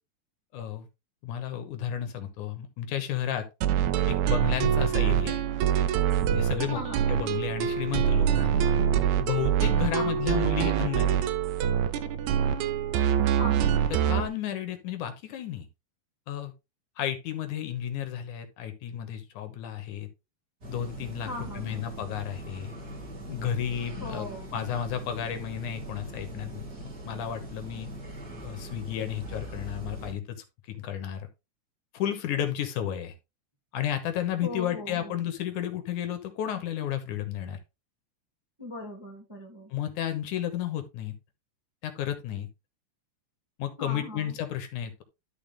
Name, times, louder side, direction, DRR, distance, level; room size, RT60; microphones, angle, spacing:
voice 1, 0.5-0.9 1.2-3.5 4.1-5.4 6.3-6.8 7.1-8.6 9.2-11.3 13.9-15.7 16.3-16.5 17.0-20.1 20.7-22.7 23.3-24.3 24.5-26.7 27.1-27.9 28.4-30.2 30.7-31.3 31.9-33.1 33.7-37.6 39.7-41.2 41.8-42.5 43.6-45.0, left 10 dB, 75° left, 2.6 m, -32 dB
sound 1, 3.6-14.3, right 9 dB, 75° right, 1.9 m, -25 dB
voice 2, 6.7-7.1 9.9-10.3 13.3-13.7 21.2-21.8 24.0-24.6 34.4-35.2 38.6-39.7 43.8-44.4, left 2 dB, 10° right, 1.3 m, -39 dB
sound 2, 20.6-30.1, right 1 dB, 30° right, 2.9 m, -41 dB
12.0 x 4.7 x 3.5 m
omnidirectional pair, 3.6 m